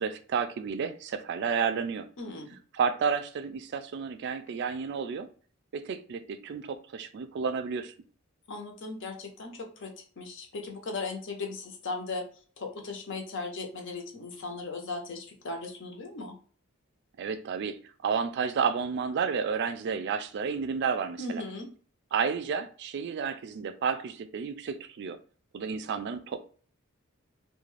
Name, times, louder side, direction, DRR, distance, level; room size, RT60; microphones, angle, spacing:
voice 1, 0.0-2.1 2.7-5.3 5.7-7.9 17.2-21.4 22.1-25.2 25.5-26.4, right 6 dB, 55° right, 0.3 m, -31 dB
voice 2, 2.2-2.6 8.5-12.2 12.6-16.3 21.2-21.7, left 3 dB, 60° left, 0.7 m, -37 dB
2.4 x 2.2 x 3.1 m
head